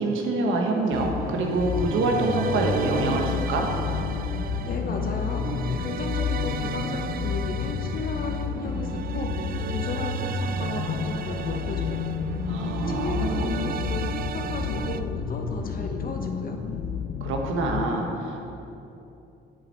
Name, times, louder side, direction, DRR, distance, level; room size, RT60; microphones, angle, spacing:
voice 1, 0.0-3.7 12.4-13.6 17.2-18.4, right 2 dB, 85° right, 1 dB, 1.2 m, -26 dB
sound 1, 0.9-15.0, right 8 dB, 50° right, 0.4 m, -35 dB
sound 2, 1.0-17.9, left 7 dB, 80° left, 0.6 m, -30 dB
voice 2, 4.7-12.0 12.9-16.6, left 2 dB, 45° left, 3 dB, 1.0 m, -34 dB
7.8 x 6.9 x 4.5 m, 2.8 s
cardioid pair, 90°, 20 cm